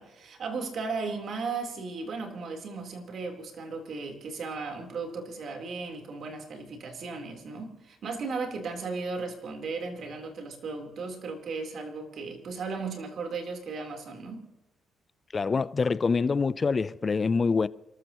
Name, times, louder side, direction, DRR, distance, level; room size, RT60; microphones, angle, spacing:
voice 1, 0.0-14.5, right 4 dB, 60° right, 3.8 m, -36 dB
voice 2, 15.3-17.7, left 4 dB, 35° left, 0.6 m, -25 dB
29.0 x 14.0 x 3.1 m
cardioid pair, 90°, 0 cm